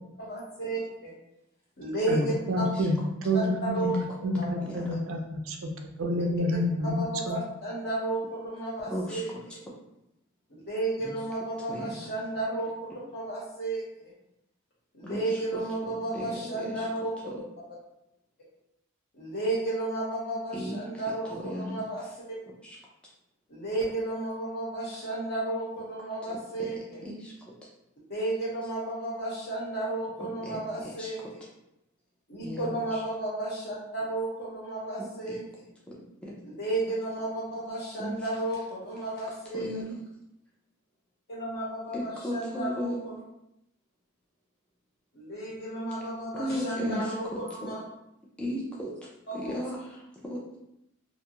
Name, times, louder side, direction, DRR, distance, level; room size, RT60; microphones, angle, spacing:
voice 1, 0.2-1.1 1.8-2.7 3.3-4.0 4.4-4.5 6.8-9.3 10.7-14.1 14.9-17.3 19.1-22.0 23.5-27.0 28.1-31.2 32.3-35.4 36.4-39.7 41.3-43.1 45.1-47.8 49.3-49.6, right 2 dB, 50° left, -5 dB, 1.0 m, -33 dB
voice 2, 2.1-3.0 3.2-5.2 5.4-5.7 6.0-7.4, equal, 65° right, 3 dB, 0.4 m, -28 dB
voice 3, 4.6-5.0 8.9-9.4 11.0-11.2 11.7-12.1 15.0-16.9 17.3-17.4 20.5-21.0 21.3-21.8 22.6-22.8 26.2-27.3 30.2-31.1 32.4-33.0 35.0-35.4 35.9-36.0 36.2-36.4 38.0-38.2 39.5-40.0 41.9-43.0 46.3-47.7 48.4-48.9 49.3-50.6, equal, 5° left, -5 dB, 0.4 m, -36 dB
2.5 x 2.3 x 2.8 m, 0.84 s
head